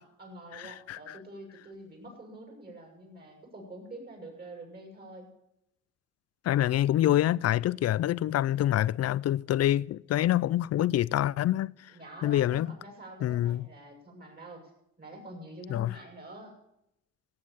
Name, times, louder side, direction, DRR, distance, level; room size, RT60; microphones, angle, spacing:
voice 1, 0.0-5.3 11.9-14.6 15.0-16.5, right 1 dB, 30° right, 6.6 m, -46 dB
voice 2, 0.5-1.2 6.4-11.7 12.2-12.7 13.2-13.7 15.7-15.9, left 13 dB, 55° left, 0.5 m, -26 dB
16.5 x 8.6 x 7.1 m
cardioid pair, 90°, 30 cm